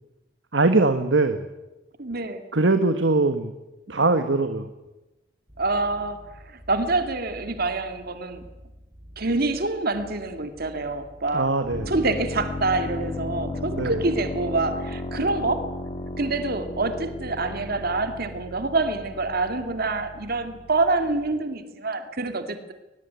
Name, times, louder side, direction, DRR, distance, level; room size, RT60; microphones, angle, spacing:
voice 1, 0.5-1.5 2.5-3.5 3.9-4.7 11.3-11.9 13.7-14.0, right 3 dB, 70° right, 8 dB, 1.5 m, -21 dB
voice 2, 2.0-2.4 5.6-6.2 6.4-8.4 9.2-11.5 11.9-15.6 16.2-22.7, right 3 dB, 55° right, 8 dB, 2.3 m, -26 dB
sound 1, 5.5-14.0, equal, 15° right, 7.8 m, -48 dB
sound 2, 11.7-21.3, left 2 dB, 30° left, 2.4 m, -35 dB
22.0 x 20.5 x 9.5 m, 1.0 s
head